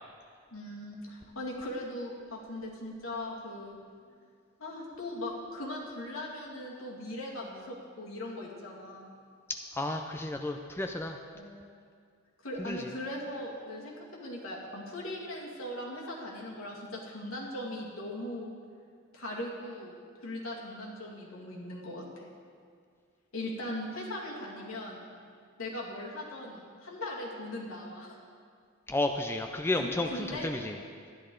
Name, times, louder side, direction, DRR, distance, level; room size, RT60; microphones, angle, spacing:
voice 1, 0.5-3.8 4.6-9.1 11.3-11.6 12.4-18.5 19.1-22.3 23.3-25.1 25.6-28.2 29.7-30.5, left 1 dB, 75° left, -3 dB, 2.1 m, -39 dB
voice 2, 9.8-11.2 12.6-12.9 28.9-30.8, left 2 dB, 10° left, 4 dB, 0.4 m, -32 dB
12.5 x 10.5 x 3.8 m, 2.2 s
head